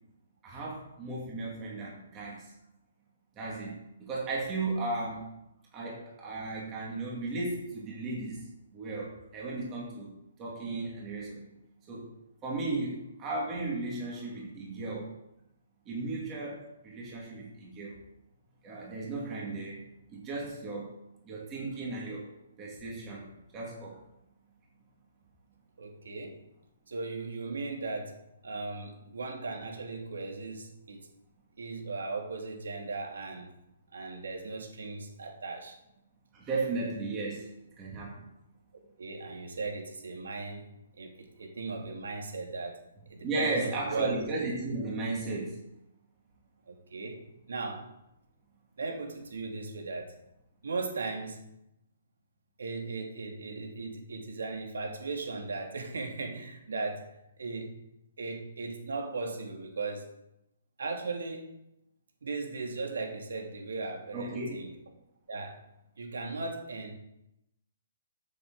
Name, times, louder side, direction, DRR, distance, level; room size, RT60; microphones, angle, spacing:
voice 1, 0.4-2.5 3.4-5.3 5.7-8.4 8.7-11.6 11.9-12.1 12.4-15.1 15.9-18.0 18.6-19.8 20.1-21.0 21.2-22.3 22.6-24.0 36.3-37.5 37.8-38.3 43.2-45.6 64.1-64.7, right 2 dB, 15° right, -4 dB, 2.1 m, -35 dB
voice 2, 25.8-26.3 26.9-31.1 31.6-33.5 33.9-35.7 39.0-40.6 40.9-42.8 43.1-44.1 46.7-47.9 48.8-50.1 50.6-51.4 52.6-57.7 58.2-60.1 60.8-61.5 62.2-64.7 65.3-65.6 66.0-67.0, right 3 dB, 90° right, 2 dB, 2.5 m, -37 dB
14.0 x 6.7 x 3.9 m, 0.86 s
hypercardioid pair, 180°, 0 cm